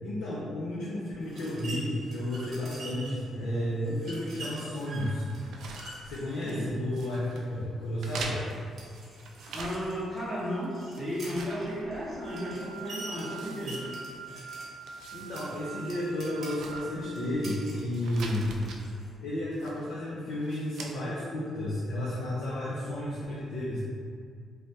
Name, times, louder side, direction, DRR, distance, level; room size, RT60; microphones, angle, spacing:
voice 1, 0.0-5.3 6.0-8.4 15.1-18.6 19.2-23.8, left 1 dB, 75° left, -7 dB, 0.5 m, -32 dB
sound 1, 1.2-19.1, right 1 dB, 55° right, 0.9 m, -47 dB
sound 2, 4.7-6.6 6.9-7.5 8.0-10.1 10.5-12.4 12.7-12.8 13.2-14.4 14.7-15.5 15.9-16.0 16.4-17.6 17.9-18.8 19.5-20.0 20.4-20.9, right 3 dB, 75° right, 0.3 m, -44 dB
voice 2, 6.4-6.7 9.5-13.8, equal, 5° right, -10 dB, 0.7 m, -34 dB
sound 3, 12.2-17.4, right 6 dB, 30° left, 1.1 m, -45 dB
3.2 x 2.2 x 2.7 m, 2.2 s
cardioid pair, 90°, 0 cm